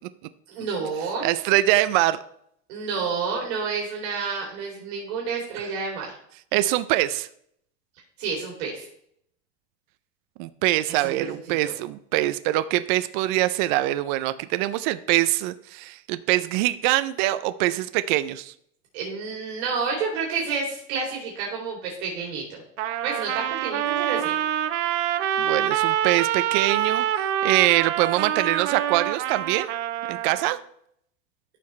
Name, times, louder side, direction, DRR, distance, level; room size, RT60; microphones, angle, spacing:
voice 1, 0.5-1.3 2.7-6.1 8.2-8.9 11.0-11.3 11.6-11.7 18.9-22.4 23.0-24.3, right 5 dB, 65° right, -2 dB, 2.8 m, -29 dB
voice 2, 1.2-2.2 6.5-7.3 10.4-18.5 25.4-27.0 27.4-29.7 30.1-30.6, right 16 dB, 45° right, 12 dB, 0.4 m, -23 dB
Trumpet, 22.8-30.6, right 11 dB, 80° right, 0.8 m, -26 dB
13.5 x 5.8 x 3.1 m, 0.70 s
supercardioid pair, 160°, 35 cm